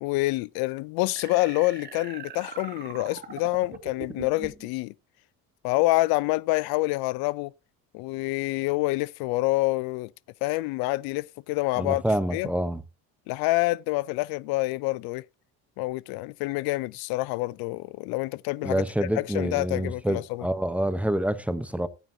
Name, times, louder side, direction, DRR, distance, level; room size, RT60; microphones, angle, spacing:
voice 1, 0.0-4.9 5.6-7.5 7.9-10.1 10.4-12.0 12.3-12.5 13.3-15.2 15.8-20.5, left 21 dB, 80° left, 0.5 m, -27 dB
sound 1, 1.2-4.7, right 5 dB, 30° right, 2.4 m, -41 dB
voice 2, 11.8-12.8 18.6-21.9, right 1 dB, 5° right, 0.8 m, -27 dB
15.0 x 9.3 x 2.7 m
cardioid pair, 110°, 36 cm